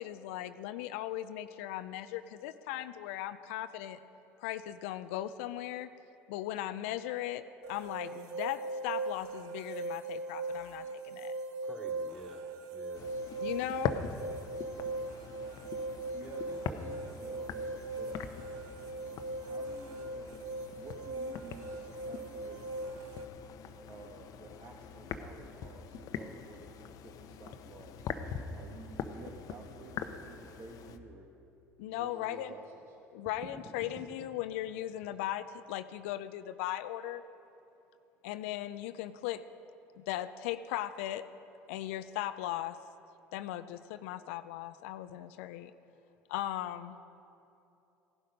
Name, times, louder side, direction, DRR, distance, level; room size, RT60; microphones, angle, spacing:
voice 1, 0.0-4.0 4.4-5.9 6.3-7.4 7.7-11.4 13.4-14.0 31.8-32.5 33.1-37.2 38.2-39.4 40.0-41.2 41.7-42.8 43.3-45.7 46.3-47.0, left 13 dB, 75° left, 11 dB, 0.5 m, -38 dB
sound 1, 7.6-23.3, right 2 dB, 65° right, 1.1 m, -40 dB
voice 2, 11.6-13.1, equal, 5° left, 0 dB, 2.9 m, -50 dB
sound 2, 12.9-31.0, left 7 dB, 55° left, 0.9 m, -43 dB
voice 3, 16.1-18.3 19.4-22.7 23.9-28.1 28.5-31.3 31.9-33.6 33.9-34.0 35.0-35.1, right 3 dB, 45° right, 1 dB, 1.5 m, -52 dB
16.5 x 11.5 x 5.2 m, 2.8 s
hypercardioid pair, 70°, 7 cm